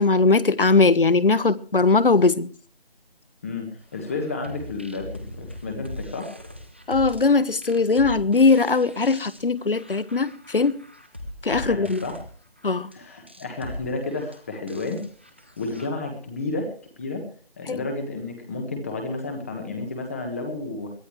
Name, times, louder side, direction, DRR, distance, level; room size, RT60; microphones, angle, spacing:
voice 1, 0.0-2.5 6.9-10.8 11.4-12.0 12.6-12.9 17.7-17.8, left 3 dB, 65° left, 1.3 m, -20 dB
voice 2, 3.4-6.3 11.6-12.1 12.9-15.0 15.6-16.7 17.0-17.2 17.6-20.9, left 3 dB, 15° left, 1.4 m, -31 dB
sound 1, 3.9-15.9, left 1 dB, 10° right, 0.7 m, -40 dB
22.0 x 13.0 x 3.2 m
figure-of-eight pair, 165°, 30 cm